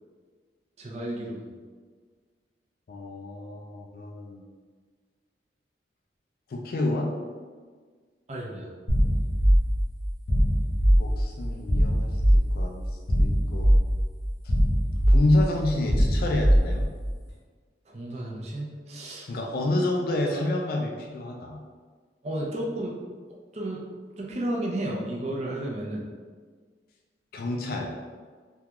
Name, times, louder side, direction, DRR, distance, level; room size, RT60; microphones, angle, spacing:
voice 1, 0.8-1.5 8.3-8.7 17.9-19.3 22.2-23.0 23.5-23.8 24.2-26.0, right 1 dB, 40° right, -2 dB, 0.5 m, -32 dB
voice 2, 2.9-4.4 6.5-7.1 11.0-12.9 13.2-13.7 15.1-16.9 19.3-21.6 27.3-27.9, left 1 dB, 55° left, 0 dB, 0.3 m, -28 dB
sound 1, 8.9-17.1, equal, 80° left, 0.8 m, -22 dB
3.6 x 2.3 x 2.8 m, 1.5 s
head